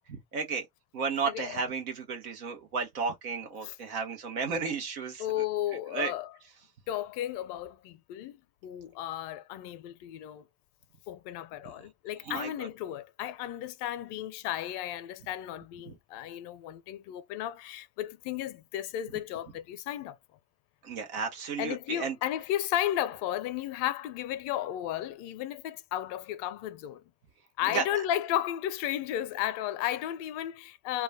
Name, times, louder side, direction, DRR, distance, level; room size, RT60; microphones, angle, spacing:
voice 1, 0.1-0.6 0.9-5.2 5.9-6.1 12.3-12.7 15.9-16.0 20.8-22.2 27.7-27.8, right 5 dB, 85° right, 0.7 m, -33 dB
voice 2, 1.3-1.6 3.6-3.8 5.2-6.3 6.9-8.4 8.6-10.4 11.1-20.2 21.6-27.0 27.6-31.0, left 12 dB, 70° left, 0.5 m, -34 dB
2.3 x 2.2 x 3.3 m
hypercardioid pair, 45°, 42 cm